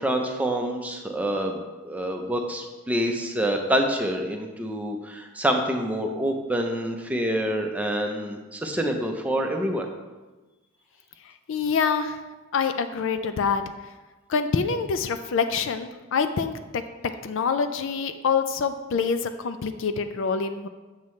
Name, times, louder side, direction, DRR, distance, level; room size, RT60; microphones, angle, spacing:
voice 1, 0.0-9.9, right 1 dB, 5° right, 2 dB, 0.6 m, -27 dB
voice 2, 11.5-12.2 12.5-13.6 14.3-16.5 17.2-20.7, left 5 dB, 55° left, 9 dB, 0.4 m, -25 dB
7.4 x 7.2 x 3.2 m, 1.2 s
head